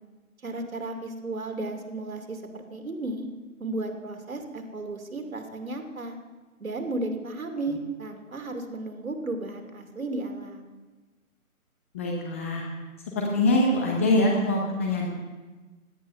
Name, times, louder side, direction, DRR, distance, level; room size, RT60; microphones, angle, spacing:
voice 1, 0.4-3.3 3.6-6.2 6.6-10.7, right 2 dB, 70° right, 5 dB, 2.8 m, -34 dB
voice 2, 11.9-12.6 13.1-15.1, left 1 dB, 10° left, 0 dB, 0.7 m, -24 dB
16.5 x 11.5 x 5.6 m, 1.3 s
figure-of-eight pair, 145°, 43 cm